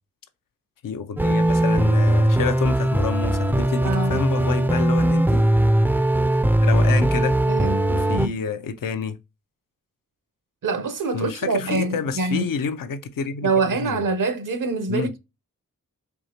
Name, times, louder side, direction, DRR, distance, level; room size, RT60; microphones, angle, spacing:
voice 1, 0.8-5.5 5.9-6.1 6.6-7.4 7.9-9.2 11.1-14.0 14.9-15.1, left 6 dB, 85° left, 0.5 m, -29 dB
sound 1, 1.2-8.3, right 1 dB, 5° right, 0.3 m, -19 dB
voice 2, 3.8-4.2 7.4-8.4 10.6-12.5 13.4-15.2, right 3 dB, 75° right, 0.7 m, -25 dB
4.6 x 2.8 x 2.8 m
cardioid pair, 45°, 32 cm